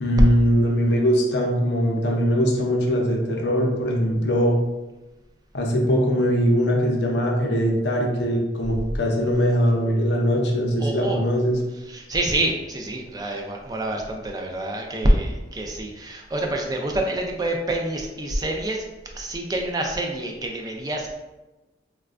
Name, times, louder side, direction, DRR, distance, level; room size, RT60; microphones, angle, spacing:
voice 1, 0.0-4.6 5.5-11.6, equal, 70° left, 0 dB, 0.6 m, -21 dB
voice 2, 10.8-11.2 11.9-18.8 19.1-21.1, right 1 dB, 20° right, 1 dB, 0.3 m, -26 dB
4.1 x 2.2 x 2.4 m, 1.1 s
head